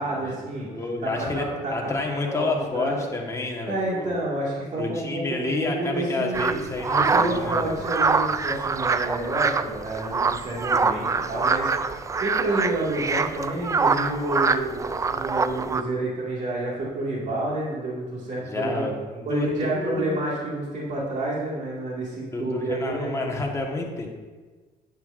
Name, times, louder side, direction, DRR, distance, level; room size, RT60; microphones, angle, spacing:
voice 1, 0.0-0.7 1.0-1.9 2.3-3.0 3.7-6.6 7.0-18.8 19.3-23.3, right 2 dB, 45° right, -4 dB, 2.1 m, -29 dB
voice 2, 0.6-1.5 1.7-4.2 4.7-7.8 18.4-20.2 22.3-24.1, left 3 dB, 15° left, 0 dB, 1.4 m, -29 dB
sound 1, 6.3-15.8, right 4 dB, 20° right, 0.3 m, -24 dB
10.0 x 8.0 x 2.6 m, 1.4 s
cardioid pair, 110°, 17 cm